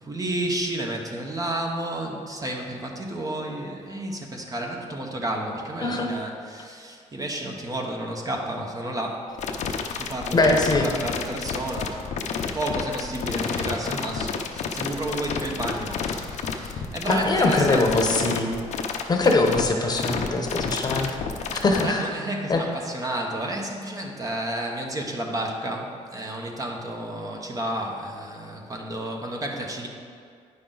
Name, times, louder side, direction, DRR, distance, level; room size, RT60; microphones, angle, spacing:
voice 1, 0.0-9.3 10.0-12.0 12.5-17.9 21.6-29.9, right 1 dB, 25° right, 1 dB, 1.0 m, -31 dB
voice 2, 5.8-6.1 10.3-10.9 17.1-18.5 19.1-21.1 21.6-22.1 22.5-22.6, left 2 dB, 30° left, 2 dB, 1.0 m, -22 dB
sound 1, 9.4-21.8, left 6 dB, 65° left, 0.7 m, -30 dB
9.1 x 5.8 x 3.9 m, 2.2 s
cardioid pair, 95°, 13 cm